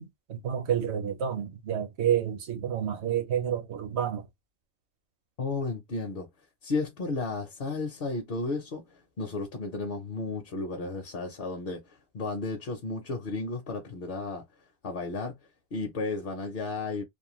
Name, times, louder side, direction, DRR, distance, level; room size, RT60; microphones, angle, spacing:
voice 1, 0.0-4.3, right 9 dB, 65° right, 1.0 m, -29 dB
voice 2, 5.4-6.3 6.6-14.4 14.8-15.4 15.7-17.0, left 3 dB, 55° left, 0.7 m, -33 dB
2.5 x 2.2 x 2.9 m
omnidirectional pair, 1.2 m